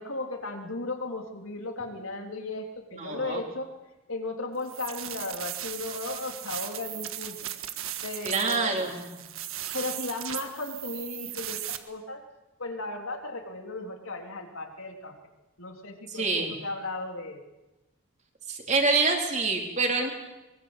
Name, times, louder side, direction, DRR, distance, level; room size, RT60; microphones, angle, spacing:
voice 1, 0.0-3.7 4.1-7.5 8.0-8.9 9.7-12.2 12.6-15.1 15.6-17.4, left 2 dB, 75° left, 3 dB, 3.5 m, -36 dB
voice 2, 3.0-3.4 8.2-9.1 16.1-16.5 18.5-20.1, right 3 dB, 35° right, 2 dB, 4.1 m, -26 dB
sound 1, 4.6-11.8, right 12 dB, 75° right, 1.7 m, -37 dB
23.0 x 23.0 x 8.1 m, 1.0 s
head